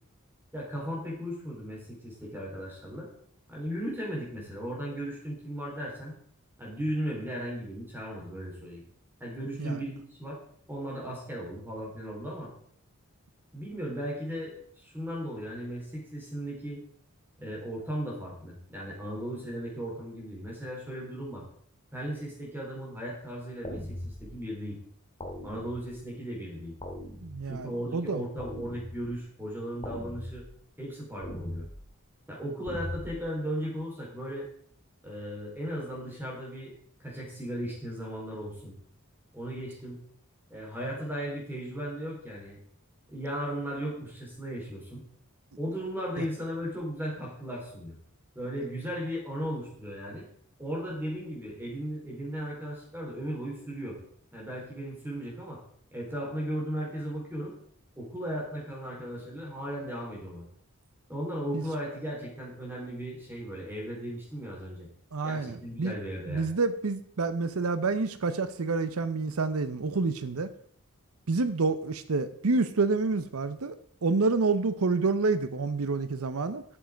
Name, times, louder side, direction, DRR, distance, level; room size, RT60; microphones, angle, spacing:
voice 1, 0.5-3.1 3.5-6.2 6.6-8.8 9.2-10.4 10.7-12.5 13.5-16.8 17.4-21.4 21.9-24.8 25.4-26.8 27.4-30.4 30.8-31.7 32.3-34.5 35.0-36.7 37.0-38.7 39.3-40.0 40.5-42.6 43.1-45.0 45.6-48.0 48.3-50.3 50.6-54.0 54.3-55.6 55.9-57.5 58.0-60.5 61.1-64.9 65.2-66.5, equal, 10° right, 4.2 m, -36 dB
sound 1, 23.6-24.4 25.2-26.0 26.8-27.6 28.4-29.2 29.8-30.6 31.2-31.9 32.7-33.2, left 1 dB, 25° left, 1.9 m, -40 dB
voice 2, 27.2-28.2 46.2-46.3 61.5-61.6 65.1-65.9 66.3-70.5 71.3-73.8 74.0-76.6, right 3 dB, 85° right, 0.7 m, -28 dB
12.0 x 7.3 x 5.2 m
head